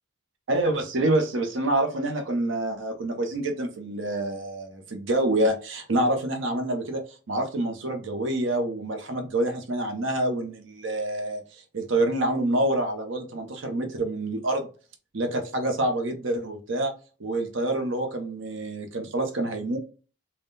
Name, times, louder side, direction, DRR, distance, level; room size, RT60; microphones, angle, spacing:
voice 1, 0.5-14.7 15.1-16.9 17.2-19.8, right 1 dB, 60° right, 5 dB, 0.6 m, -27 dB
3.6 x 2.2 x 3.9 m, 0.36 s
head